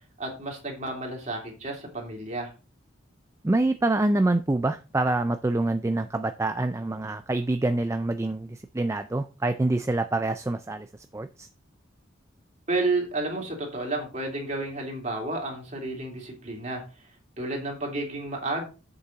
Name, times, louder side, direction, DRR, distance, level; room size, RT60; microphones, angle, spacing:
voice 1, 0.2-2.5 12.7-16.8 17.4-18.7, right 2 dB, 35° right, 1 dB, 2.8 m, -31 dB
voice 2, 3.4-10.9 11.1-11.5, right 2 dB, 15° right, 9 dB, 0.3 m, -26 dB
8.3 x 6.7 x 3.9 m, 0.33 s
head